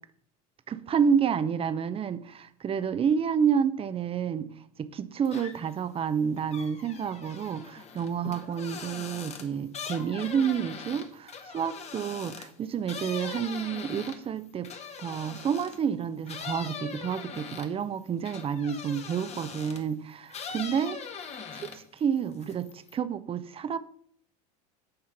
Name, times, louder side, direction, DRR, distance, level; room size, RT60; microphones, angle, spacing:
voice 1, 0.7-4.5 4.8-14.7 15.0-21.0 21.5-23.8, right 7 dB, 25° right, 13 dB, 0.7 m, -29 dB
sound 1, 5.2-5.8 6.1-15.8 16.3-19.9 20.3-22.0 22.3-22.9, left 6 dB, 30° left, 1.1 m, -41 dB
8.6 x 3.6 x 5.8 m, 0.63 s
hypercardioid pair, 95°, 21 cm